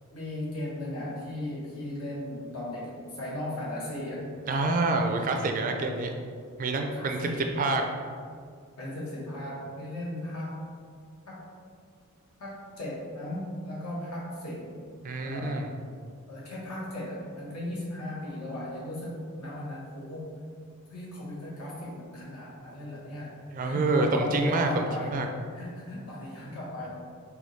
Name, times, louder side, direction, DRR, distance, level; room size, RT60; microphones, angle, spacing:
voice 1, 0.1-4.3 6.9-7.5 8.8-10.6 11.3-11.4 12.4-14.7 15.2-15.7 16.3-20.4 20.9-23.3 23.6-25.2 25.5-26.9, left 1 dB, 80° left, -6 dB, 1.3 m, -36 dB
voice 2, 4.5-6.1 6.6-7.3 7.6-7.8 15.0-15.7 23.5-25.3, right 2 dB, 40° right, 4 dB, 0.3 m, -27 dB
3.5 x 3.0 x 4.0 m, 2.1 s
head